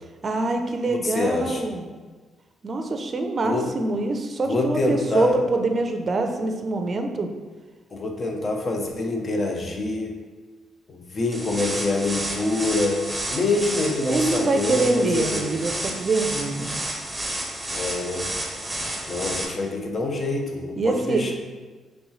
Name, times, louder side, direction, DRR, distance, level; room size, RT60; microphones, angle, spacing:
voice 1, 0.2-1.9 2.6-7.3 14.1-16.8 20.8-21.3, right 3 dB, 40° right, 5 dB, 0.5 m, -25 dB
voice 2, 0.9-1.6 3.5-3.7 4.5-5.4 7.9-10.1 10.9-13.0 13.3-15.4 17.7-18.3 19.1-21.3, left 2 dB, 40° left, 3 dB, 0.7 m, -25 dB
sound 1, 11.3-19.4, right 1 dB, 10° right, 0.8 m, -31 dB
5.2 x 3.1 x 3.1 m, 1.4 s
cardioid pair, 90°, 0 cm